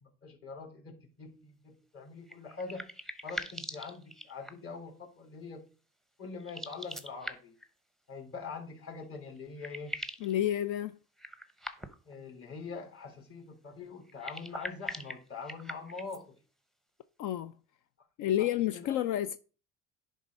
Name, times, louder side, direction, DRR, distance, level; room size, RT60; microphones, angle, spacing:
voice 1, 0.0-2.9 3.2-5.6 6.2-7.5 8.1-10.0 12.0-16.4 18.4-19.0, left 4 dB, 40° left, 3.3 m, -44 dB
sound 1, 2.2-4.8 6.4-7.7 9.0-9.1 9.4-10.3 11.2-12.1 14.1-16.2, right 1 dB, ahead, 0.8 m, -42 dB
voice 2, 10.2-11.0 17.2-17.5 18.2-19.4, left 12 dB, 55° left, 0.5 m, -30 dB
10.5 x 3.7 x 5.3 m
supercardioid pair, 110°, 36 cm